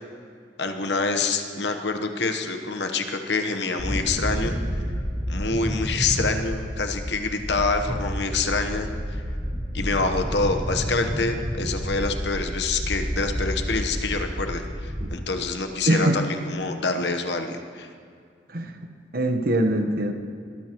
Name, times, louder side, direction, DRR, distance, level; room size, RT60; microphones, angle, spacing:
voice 1, 0.6-4.6 5.3-9.2 9.7-17.9, left 3 dB, 70° left, 6 dB, 1.1 m, -26 dB
sound 1, 3.8-15.0, equal, 20° right, 1.9 m, -30 dB
voice 2, 15.9-16.2 18.5-18.7 19.1-20.1, right 1 dB, 55° right, 5 dB, 1.1 m, -22 dB
21.0 x 14.0 x 3.0 m, 2.3 s
head